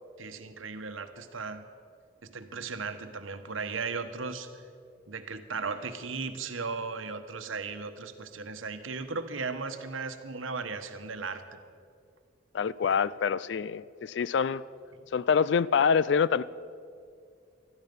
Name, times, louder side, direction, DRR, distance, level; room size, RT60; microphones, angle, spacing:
voice 1, 0.2-1.6 2.2-4.6 5.1-11.6 12.8-13.0, right 4 dB, 90° right, 8 dB, 1.1 m, -36 dB
voice 2, 12.5-14.6 15.1-16.4, left 6 dB, 60° left, 18 dB, 0.3 m, -25 dB
20.0 x 13.5 x 5.3 m, 2.3 s
head